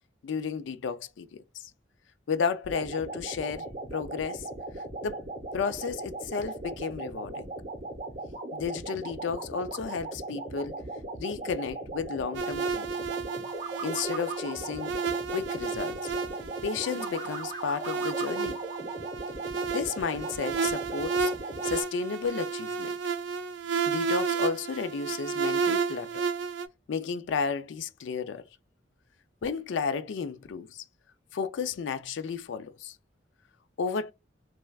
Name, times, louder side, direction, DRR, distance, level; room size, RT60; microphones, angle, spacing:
voice 1, 0.2-1.7 2.3-4.5 5.0-5.2 5.5-7.5 8.5-10.8 11.2-13.1 13.8-15.0 15.3-16.1 16.6-18.6 19.7-21.3 21.6-23.0 23.9-26.2 26.9-28.4 29.4-30.8 31.3-33.0 33.8-34.1, left 5 dB, 80° left, 0.4 m, -33 dB
sound 1, 2.7-21.8, right 2 dB, 40° right, 0.7 m, -38 dB
sound 2, 12.3-26.7, right 5 dB, 75° right, 0.3 m, -32 dB
3.2 x 2.4 x 2.3 m
head